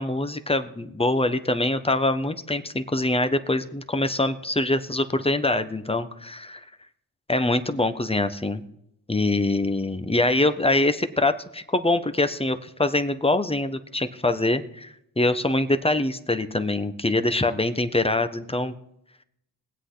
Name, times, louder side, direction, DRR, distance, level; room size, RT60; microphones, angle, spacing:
voice 1, 0.0-6.6 7.3-8.6 9.1-18.7, left 2 dB, 15° left, 9 dB, 1.3 m, -24 dB
20.0 x 8.2 x 4.0 m, 0.78 s
supercardioid pair, 50°, 39 cm